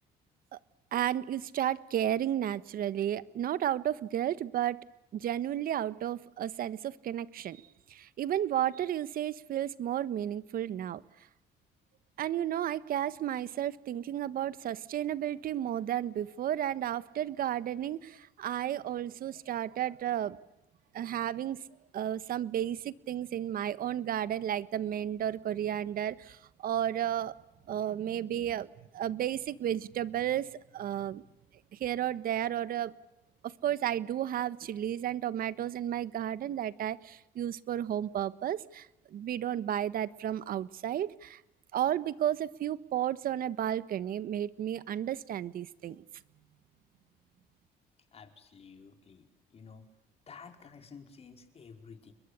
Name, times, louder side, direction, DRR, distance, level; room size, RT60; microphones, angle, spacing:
voice 1, 0.9-7.6 7.9-11.0 12.2-20.4 20.9-21.6 21.9-27.3 27.7-31.2 31.7-33.0 33.4-41.4 41.7-46.0, right 11 dB, 60° right, 16 dB, 1.4 m, -33 dB
voice 2, 48.1-49.3 49.5-49.9 50.3-52.1, left 5 dB, 35° left, 5 dB, 5.1 m, -51 dB
29.5 x 22.5 x 8.4 m, 0.88 s
cardioid pair, 110°, 17 cm